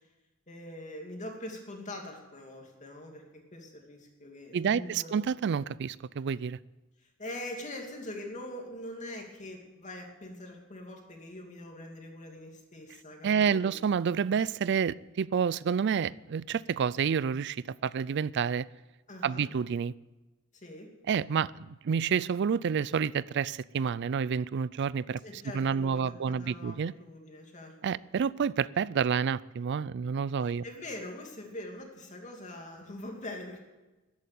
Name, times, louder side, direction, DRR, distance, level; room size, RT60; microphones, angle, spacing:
voice 1, 0.5-3.2 3.5-5.2 7.0-13.8 19.1-19.5 20.6-20.9 25.2-28.0 30.4-33.6, left 1 dB, 35° left, 2 dB, 2.7 m, -43 dB
voice 2, 4.5-6.6 13.2-18.7 19.2-19.9 21.1-25.2 25.5-26.9 27.8-30.6, right 6 dB, 55° right, 21 dB, 0.4 m, -29 dB
13.5 x 8.5 x 9.4 m, 1.1 s
head